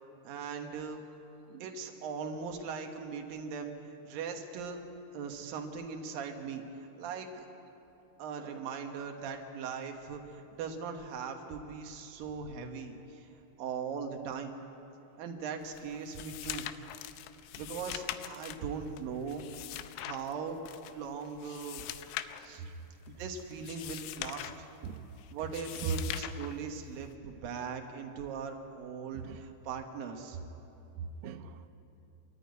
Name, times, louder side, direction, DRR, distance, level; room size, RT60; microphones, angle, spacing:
voice 1, 0.2-1.0 1.6-3.7 4.0-4.8 5.1-6.6 7.0-7.4 8.2-13.3 13.6-14.5 15.2-16.7 17.6-19.4 20.0-20.6 20.9-21.9 22.4-22.6 23.1-24.6 25.3-30.4, right 6 dB, 70° right, 2.2 m, -39 dB
sound 1, 15.6-27.2, left 13 dB, 80° left, 3.2 m, -43 dB
voice 2, 31.0-31.7, right 6 dB, 90° right, 3.7 m, -39 dB
26.5 x 14.0 x 9.5 m
omnidirectional pair, 6.0 m